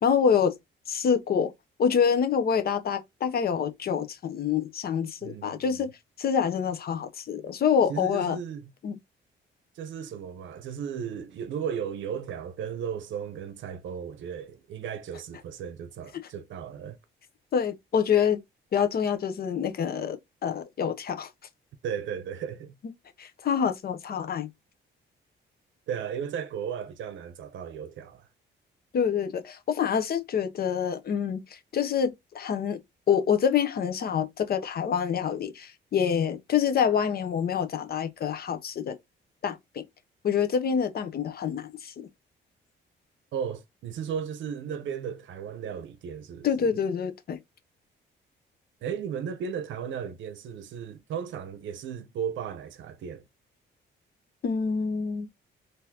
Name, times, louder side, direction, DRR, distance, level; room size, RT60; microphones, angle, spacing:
voice 1, 0.0-0.5 0.9-1.5 1.8-5.9 6.2-8.4 8.8-9.0 17.5-18.4 18.7-21.3 23.2-24.5 28.9-31.4 31.7-32.8 33.1-39.0 39.4-39.8 40.2-42.1 46.4-47.4 54.4-55.3, left 7 dB, 50° left, 0.7 m, -26 dB
voice 2, 5.2-5.8 7.9-8.7 9.8-17.0 21.8-22.7 25.9-28.3 43.3-46.8 48.8-53.2, right 7 dB, 70° right, 0.7 m, -35 dB
3.8 x 2.6 x 2.8 m
cardioid pair, 90°, 20 cm